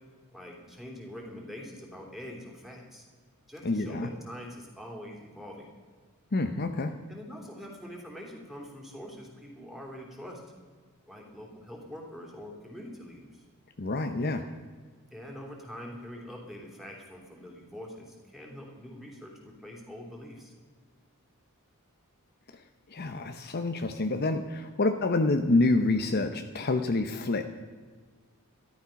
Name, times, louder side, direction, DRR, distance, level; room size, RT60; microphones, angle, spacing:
voice 1, 0.3-3.0 3.5-5.7 7.1-10.4 11.1-13.4 15.1-20.5, equal, ahead, -1 dB, 3.2 m, -44 dB
voice 2, 3.6-4.1 6.3-6.9 13.8-14.5 22.9-27.4, left 2 dB, 45° left, 7 dB, 0.7 m, -27 dB
13.5 x 12.0 x 5.8 m, 1.5 s
head